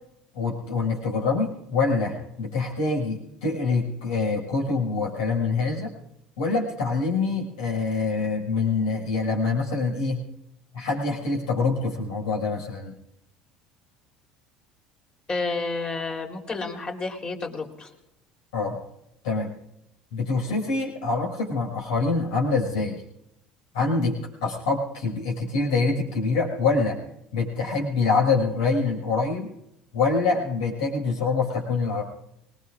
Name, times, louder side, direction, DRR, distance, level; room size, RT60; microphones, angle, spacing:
voice 1, 0.3-5.9 6.4-10.2 10.7-13.0 18.5-18.8 19.2-19.5 20.1-23.0 23.7-27.0 27.3-29.5 29.9-32.0, left 4 dB, 70° left, -2 dB, 6.0 m, -25 dB
voice 2, 15.3-17.9, left 3 dB, 30° left, 2 dB, 3.9 m, -30 dB
26.0 x 21.0 x 2.6 m, 0.83 s
figure-of-eight pair, 60°, 3 cm